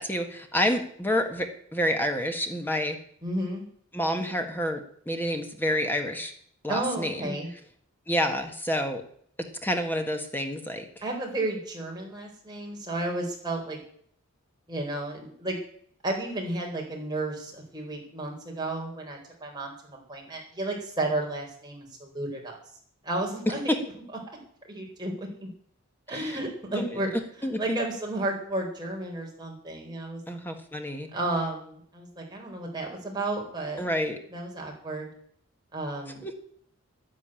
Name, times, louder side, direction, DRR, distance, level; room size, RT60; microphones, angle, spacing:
voice 1, 0.0-3.0 3.9-6.3 6.6-7.3 8.1-9.0 9.6-10.9 26.1-26.4 26.7-26.8 27.4-27.8 30.3-31.1 33.8-34.2 36.2-36.3, equal, 10° left, 5 dB, 1.5 m, -28 dB
voice 2, 3.2-3.6 6.7-7.5 11.0-13.8 14.7-15.6 16.0-22.6 23.0-23.8 24.7-25.5 26.1-27.1 27.4-30.2 31.1-33.8 34.3-35.1 35.7-36.2, right 2 dB, 20° right, -1 dB, 4.2 m, -32 dB
11.0 x 10.5 x 9.0 m, 0.62 s
head